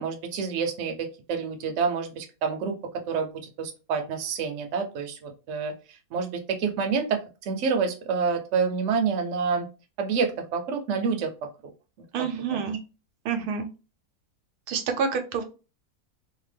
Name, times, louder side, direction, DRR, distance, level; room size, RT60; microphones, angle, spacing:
voice 1, 0.0-2.8 3.1-9.7 10.0-11.3 12.2-12.6, right 5 dB, 65° right, 4 dB, 0.9 m, -28 dB
voice 2, 12.1-12.8 13.2-13.7 14.7-15.4, right 6 dB, 90° right, 6 dB, 1.1 m, -28 dB
2.8 x 2.2 x 3.3 m, 0.32 s
omnidirectional pair, 1.6 m